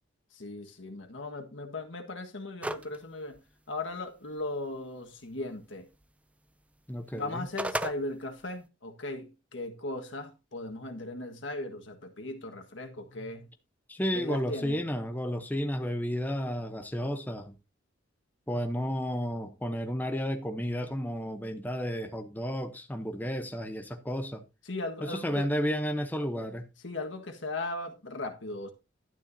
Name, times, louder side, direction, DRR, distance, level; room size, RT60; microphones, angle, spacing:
voice 1, 0.3-3.4 3.7-5.9 7.1-13.5 14.1-14.8 24.6-25.5 26.8-28.7, left 2 dB, 75° left, 1.6 m, -37 dB
sound 1, 2.6-3.0 3.4-3.5 7.2-8.0, right 1 dB, 5° right, 0.4 m, -32 dB
voice 2, 6.9-7.5 13.9-17.5 18.5-24.4 25.0-26.7, equal, 10° left, 0.8 m, -32 dB
11.5 x 9.6 x 2.7 m
head